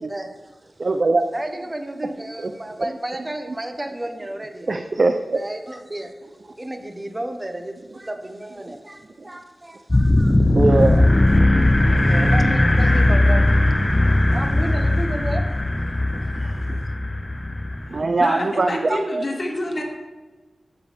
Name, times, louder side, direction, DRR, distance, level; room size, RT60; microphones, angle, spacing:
voice 1, 0.1-0.9 1.3-4.7 5.3-11.0 11.9-13.6 14.3-15.6, right 1 dB, 25° right, 6 dB, 1.0 m, -33 dB
voice 2, 0.8-1.3 2.4-2.5 4.7-5.4 10.5-11.1 11.4-11.5 11.9-12.1 14.0-14.4 16.1-16.5 17.9-19.2, right 3 dB, 55° right, 6 dB, 0.5 m, -22 dB
sound 1, 9.9-18.0, left 1 dB, 25° left, 0.5 m, -18 dB
voice 3, 17.9-19.8, left 1 dB, 50° left, 1 dB, 1.7 m, -28 dB
11.5 x 7.0 x 3.5 m, 1.2 s
wide cardioid pair, 70°, 0 cm